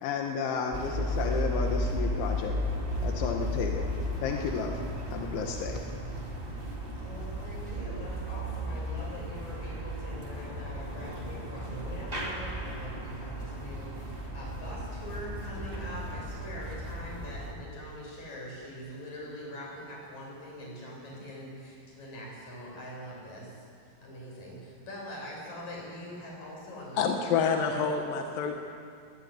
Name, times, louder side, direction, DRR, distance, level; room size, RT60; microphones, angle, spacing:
voice 1, 0.0-2.5 3.0-3.9 4.2-4.8 5.1-5.8, left 6 dB, 85° left, 2 dB, 3.9 m, -32 dB
sound 1, 0.7-17.5, equal, 15° right, 1.9 m, -34 dB
voice 2, 7.0-27.4, equal, 40° left, -3 dB, 8.6 m, -43 dB
voice 3, 27.0-28.5, left 6 dB, 65° left, 3 dB, 2.5 m, -27 dB
22.0 x 20.5 x 9.8 m, 2.4 s
omnidirectional pair, 5.3 m